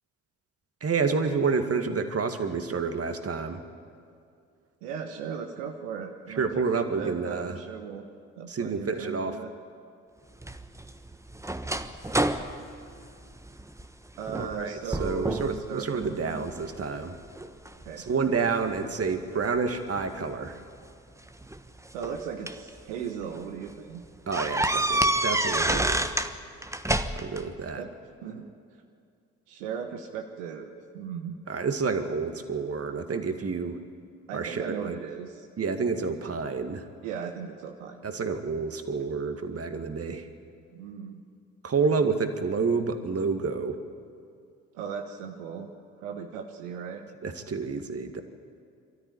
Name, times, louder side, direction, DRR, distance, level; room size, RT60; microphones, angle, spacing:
voice 1, 0.8-3.6 6.3-7.6 8.5-9.4 14.3-17.2 18.1-20.6 24.3-26.1 27.2-27.8 31.5-33.8 34.3-35.0 35.6-36.9 38.0-40.3 41.6-43.8 47.2-48.2, right 5 dB, 40° right, 7 dB, 2.1 m, -29 dB
voice 2, 4.8-8.0 8.3-9.5 14.2-16.4 17.7-18.5 21.9-24.0 27.8-27.9 28.2-28.8 29.5-31.4 34.3-35.5 37.0-38.0 40.7-41.2 44.7-45.7 46.0-47.0, right 7 dB, 80° right, 4 dB, 1.2 m, -37 dB
sound 1, 10.4-13.9 14.3-14.6 14.9-15.6 16.0-16.8 17.4-18.8 20.0-20.1 21.3-22.7 23.2-23.4 23.7-23.8 24.3-26.3 26.6-27.4, right 1 dB, 5° right, 1.3 m, -28 dB
24.5 x 13.5 x 10.0 m, 2.4 s
hypercardioid pair, 45°, 38 cm